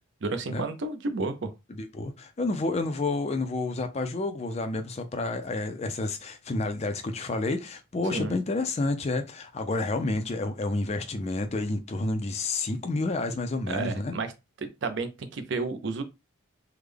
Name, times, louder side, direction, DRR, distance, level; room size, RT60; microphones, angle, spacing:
voice 1, 0.2-1.5 8.1-8.3 13.7-14.3 14.6-16.0, right 3 dB, 55° right, 0.5 m, -31 dB
voice 2, 1.7-14.1, left 2 dB, 30° left, 0.4 m, -30 dB
3.5 x 2.1 x 3.3 m
head